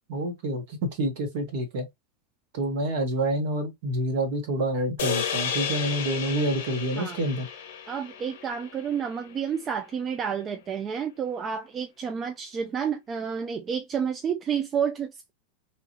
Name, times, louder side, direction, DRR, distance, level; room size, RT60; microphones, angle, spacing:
voice 1, 0.1-1.9 2.5-7.5, right 1 dB, 55° right, 1.1 m, -28 dB
sound 1, 5.0-9.4, left 7 dB, 60° left, 0.5 m, -33 dB
voice 2, 7.9-15.3, right 7 dB, 25° right, 0.4 m, -30 dB
3.0 x 2.4 x 2.9 m
figure-of-eight pair, 90°, 0 cm